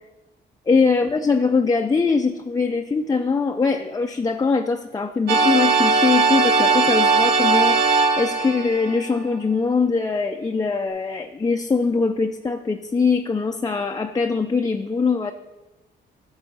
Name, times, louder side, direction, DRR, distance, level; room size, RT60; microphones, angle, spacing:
voice 1, 0.7-15.3, left 4 dB, 20° left, 4 dB, 0.5 m, -22 dB
sound 1, 5.3-9.1, right 4 dB, 55° right, 1.4 m, -19 dB
10.0 x 6.2 x 5.2 m, 1.1 s
cardioid pair, 90°, 20 cm